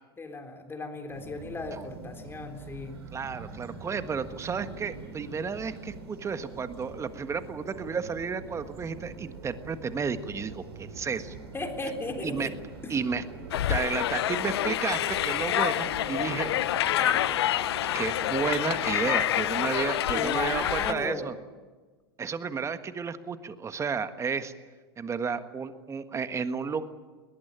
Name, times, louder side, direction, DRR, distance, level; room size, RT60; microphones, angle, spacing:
voice 1, 0.2-3.0 11.5-12.5 20.1-21.3, left 3 dB, 15° left, 4 dB, 3.7 m, -35 dB
sound 1, 1.1-21.0, right 4 dB, 80° right, 3.9 m, -44 dB
voice 2, 3.1-11.3 12.2-12.5 12.9-13.2 13.7-16.5 17.0-17.4 17.9-21.3 22.2-24.5 25.0-26.9, right 5 dB, 20° right, 10 dB, 1.5 m, -32 dB
sound 2, 13.5-20.9, left 12 dB, 75° left, 0.8 m, -27 dB
21.5 x 19.0 x 8.9 m, 1.4 s
hypercardioid pair, 95°, 14 cm